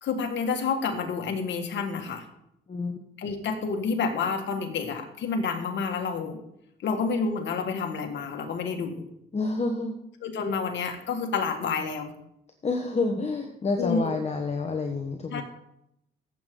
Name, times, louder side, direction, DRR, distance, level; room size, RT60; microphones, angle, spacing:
voice 1, 0.0-2.3 3.2-6.4 6.8-9.0 10.2-12.1 13.8-14.1 15.3-15.4, left 5 dB, 65° left, 4 dB, 1.9 m, -29 dB
voice 2, 2.7-3.0 9.3-10.0 12.6-15.4, left 3 dB, 35° left, 3 dB, 1.3 m, -28 dB
14.5 x 8.2 x 3.9 m, 0.80 s
cardioid pair, 90°, 20 cm